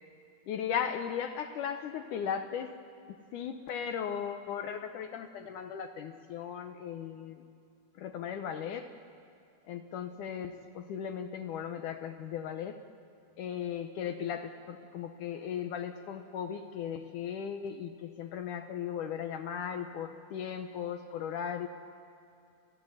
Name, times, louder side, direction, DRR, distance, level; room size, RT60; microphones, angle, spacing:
voice 1, 0.5-2.7 3.1-7.4 8.0-8.9 9.7-12.8 13.4-21.7, left 8 dB, 80° left, 7 dB, 1.8 m, -37 dB
29.5 x 15.5 x 9.9 m, 2.5 s
omnidirectional pair, 4.7 m